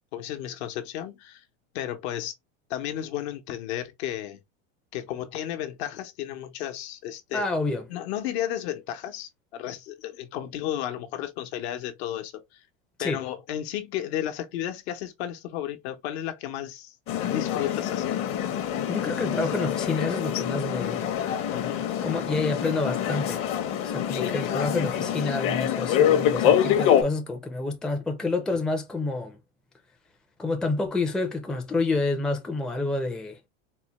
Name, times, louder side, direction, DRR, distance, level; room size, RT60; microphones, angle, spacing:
voice 1, 0.1-1.4 1.7-2.3 2.7-4.4 4.9-7.5 7.9-12.7 13.0-18.2 21.5-21.9 24.1-24.9, left 11 dB, 70° left, 0.9 m, -33 dB
voice 2, 7.3-7.9 13.0-13.2 18.9-21.1 22.0-23.4 23.8-29.4 30.4-33.4, left 3 dB, ahead, 0.4 m, -28 dB
sound 1, 17.1-27.0, left 10 dB, 40° left, 0.8 m, -25 dB
4.1 x 2.1 x 2.9 m
supercardioid pair, 135°, 33 cm